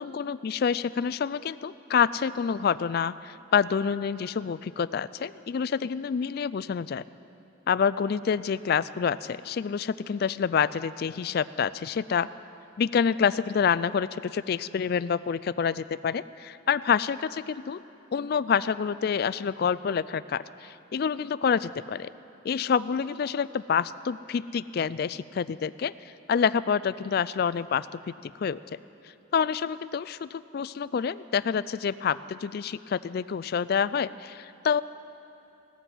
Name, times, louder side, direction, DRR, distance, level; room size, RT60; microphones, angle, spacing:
voice 1, 0.0-7.0 7.7-12.3 12.8-17.8 18.1-22.1 22.4-25.9 26.3-28.6 29.3-34.8, left 6 dB, 50° left, 17 dB, 0.3 m, -27 dB
17.0 x 13.5 x 6.2 m, 2.9 s
head